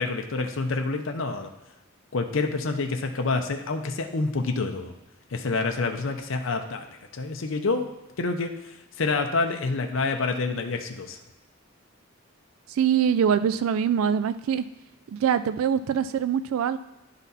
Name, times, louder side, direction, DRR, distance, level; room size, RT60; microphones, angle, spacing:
voice 1, 0.0-1.5 2.1-4.9 5.3-7.9 8.2-8.5 9.0-11.2, left 3 dB, 65° left, 4 dB, 0.6 m, -27 dB
voice 2, 12.7-14.6 15.1-16.8, right 8 dB, 80° right, 12 dB, 0.3 m, -23 dB
10.5 x 4.1 x 4.1 m, 1.0 s
head